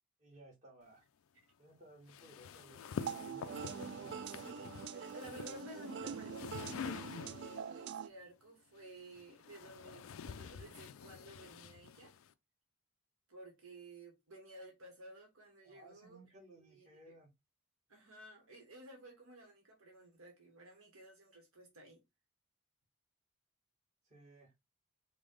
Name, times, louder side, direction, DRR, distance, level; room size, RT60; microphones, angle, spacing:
voice 1, 0.2-1.0 1.6-3.6 15.6-17.3 24.1-24.5, right 1 dB, 35° right, 1.8 m, -59 dB
sound 1, 2.1-7.7 8.8-12.3, left 6 dB, 65° left, 0.4 m, -47 dB
sound 2, 3.0-8.1, right 7 dB, 55° right, 0.3 m, -44 dB
voice 2, 4.2-12.1 13.3-16.2 16.6-17.1 17.9-22.0, right 1 dB, 70° right, 1.2 m, -54 dB
4.9 x 2.2 x 3.7 m
head